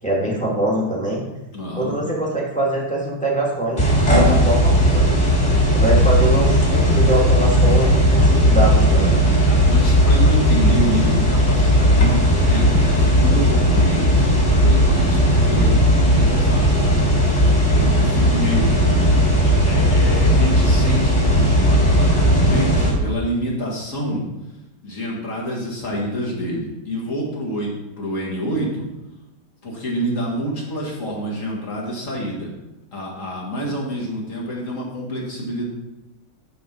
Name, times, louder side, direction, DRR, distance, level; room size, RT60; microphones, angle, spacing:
voice 1, 0.0-1.2 1.7-5.1 5.7-9.2, right 1 dB, 5° left, -4 dB, 1.7 m, -23 dB
voice 2, 1.5-1.9 9.4-16.8 17.7-18.9 19.4-24.3 24.8-28.9 29.6-32.5 32.9-35.7, equal, 35° left, -3 dB, 2.2 m, -27 dB
sound 1, 3.8-22.9, equal, 20° left, 2.4 m, -16 dB
11.5 x 4.3 x 5.3 m, 0.99 s
omnidirectional pair, 2.4 m